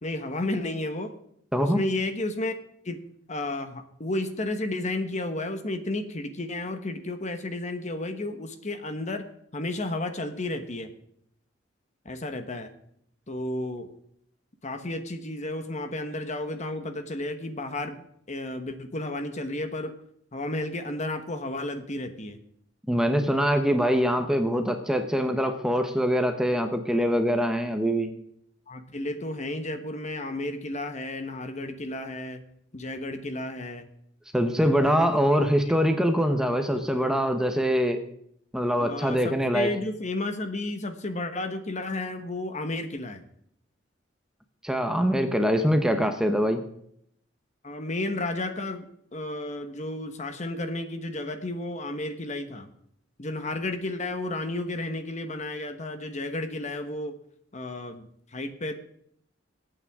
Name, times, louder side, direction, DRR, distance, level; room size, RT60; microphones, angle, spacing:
voice 1, 0.0-1.1 1.6-2.5 2.8-3.0 3.3-9.3 9.5-10.9 12.0-12.7 13.3-13.9 14.6-19.9 20.3-22.4 28.7-32.4 32.7-33.9 34.8-35.4 38.8-43.2 47.6-48.9 49.1-52.7 53.2-57.1 57.5-58.7, left 2 dB, 40° left, 8 dB, 1.2 m, -32 dB
voice 2, 22.9-28.1 34.3-38.0 38.5-39.7 44.6-46.6, equal, 5° right, 6 dB, 0.9 m, -23 dB
21.5 x 8.9 x 3.6 m, 0.70 s
head